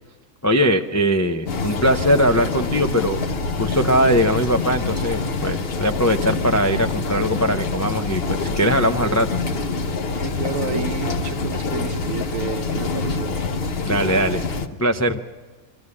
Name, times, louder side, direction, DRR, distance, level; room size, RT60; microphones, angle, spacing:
voice 1, 0.4-3.2 3.6-9.4 13.8-14.4 14.8-15.2, equal, 25° left, 5 dB, 0.4 m, -20 dB
sound 1, 1.5-14.7, left 3 dB, 45° left, 1.1 m, -25 dB
voice 2, 10.2-13.4, right 5 dB, 70° right, 9 dB, 1.2 m, -30 dB
25.0 x 13.0 x 9.7 m, 1.3 s
omnidirectional pair, 1.5 m